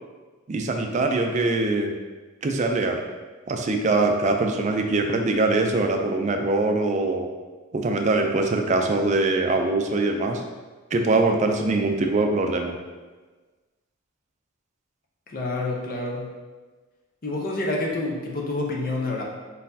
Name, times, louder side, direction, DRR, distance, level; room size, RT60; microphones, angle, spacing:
voice 1, 0.5-1.9 2.4-3.0 3.5-7.3 7.7-10.4 10.9-12.8, right 2 dB, 35° right, 4 dB, 0.4 m, -23 dB
voice 2, 15.3-16.3 17.2-19.2, left 2 dB, 45° left, -2 dB, 0.7 m, -28 dB
4.2 x 4.1 x 2.7 m, 1.3 s
head